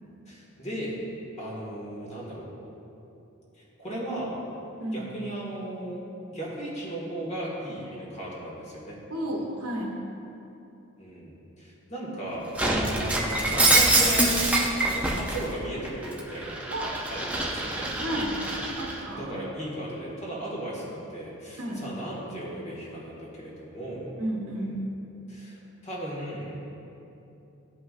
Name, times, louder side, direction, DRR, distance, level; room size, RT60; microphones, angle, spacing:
voice 1, 0.0-1.0 1.4-2.4 3.5-4.3 4.9-6.0 6.3-9.0 11.0-12.5 13.0-14.3 14.8-16.6 17.1-17.9 19.1-24.1 24.5-24.7 25.3-26.6, right 1 dB, 30° left, -5 dB, 1.7 m, -36 dB
voice 2, 4.8-5.1 9.1-10.0 16.7-17.0 18.0-18.4 18.6-19.3 21.6-21.8 24.2-24.8, right 1 dB, 75° right, -1 dB, 1.2 m, -32 dB
Shatter, 12.6-15.4 15.8-19.0, right 2 dB, 5° right, 0.5 m, -25 dB
13.0 x 5.4 x 2.5 m, 2.9 s
head